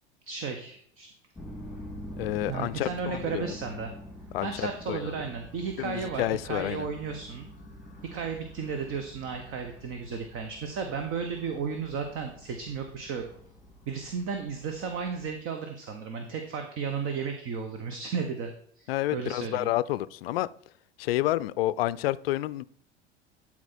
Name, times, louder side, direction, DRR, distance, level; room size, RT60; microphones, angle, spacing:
voice 1, 0.3-1.1 2.5-3.9 4.4-7.5 8.1-13.2 13.9-18.5 18.8-19.7, right 6 dB, 40° right, 1.2 m, -34 dB
sound 1, 1.4-15.3, left 1 dB, ahead, 2.2 m, -46 dB
voice 2, 2.2-3.6 4.3-5.1 5.8-6.9 18.9-20.5 21.0-22.6, left 16 dB, 60° left, 0.5 m, -29 dB
12.0 x 4.4 x 4.3 m
figure-of-eight pair, 80°, 33 cm